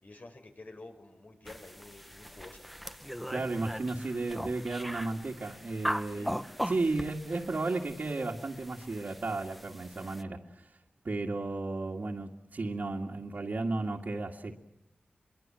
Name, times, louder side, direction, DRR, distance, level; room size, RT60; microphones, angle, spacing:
voice 1, 0.0-2.6 6.1-6.3 10.3-10.5, left 2 dB, 50° left, 6 dB, 4.7 m, -50 dB
sound 1, 1.5-10.2, equal, ahead, 1.1 m, -40 dB
voice 2, 3.3-6.3 6.6-10.8 11.0-14.6, right 3 dB, 55° right, -1 dB, 2.2 m, -34 dB
26.0 x 23.0 x 7.7 m, 0.84 s
wide cardioid pair, 100°, 3 cm